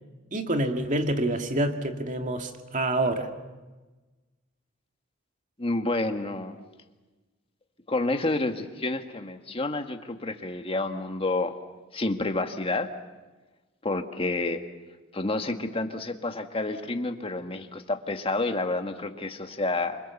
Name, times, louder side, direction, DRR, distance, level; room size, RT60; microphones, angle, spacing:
voice 1, 0.3-3.3, right 1 dB, 40° right, 5 dB, 2.2 m, -27 dB
voice 2, 5.6-6.6 7.9-11.5 11.9-12.9 13.8-14.6 15.1-20.0, left 2 dB, 30° left, 6 dB, 1.7 m, -29 dB
28.0 x 25.0 x 7.2 m, 1.2 s
head